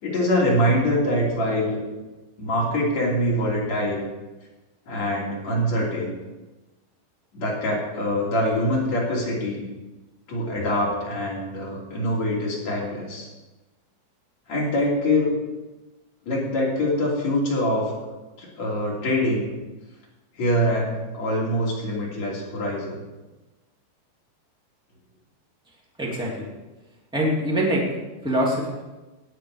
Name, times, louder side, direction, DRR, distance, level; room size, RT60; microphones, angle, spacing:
voice 1, 0.0-1.8 2.4-4.0 4.9-6.1 7.3-9.7 10.3-13.3 14.5-15.3 16.2-17.9 18.4-19.5 20.4-22.9, left 1 dB, 40° left, -5 dB, 3.7 m, -24 dB
voice 2, 26.0-26.5 27.1-27.8 28.2-28.8, equal, 5° right, -4 dB, 0.8 m, -24 dB
18.0 x 8.4 x 5.0 m, 1.1 s
omnidirectional pair, 5.7 m